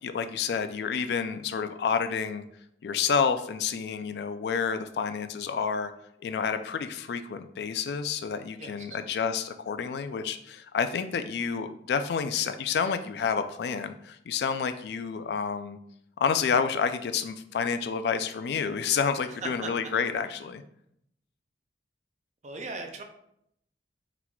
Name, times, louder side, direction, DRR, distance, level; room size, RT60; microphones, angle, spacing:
voice 1, 0.0-2.4 2.8-5.9 6.2-15.8 16.2-20.6, left 6 dB, 60° left, 10 dB, 0.3 m, -29 dB
voice 2, 8.6-9.0 19.3-19.7 22.4-23.0, right 3 dB, 40° right, 4 dB, 0.5 m, -38 dB
4.4 x 4.0 x 2.3 m, 0.74 s
head